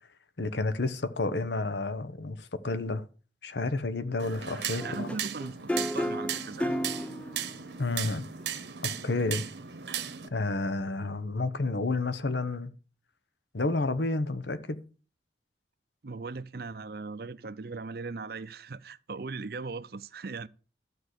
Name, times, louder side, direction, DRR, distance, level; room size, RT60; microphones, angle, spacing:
voice 1, 0.4-3.0 3.4-5.1 7.8-8.2 8.8-9.4 10.3-12.7 13.5-14.8, left 2 dB, 75° left, 1.0 m, -30 dB
sound 1, 4.2-10.3, right 9 dB, 75° right, 1.0 m, -37 dB
sound 2, 4.8-7.7 9.2-9.3, equal, 5° left, 0.5 m, -33 dB
voice 2, 4.8-6.7 16.0-20.5, right 4 dB, 55° right, 0.6 m, -39 dB
12.5 x 4.7 x 8.1 m
head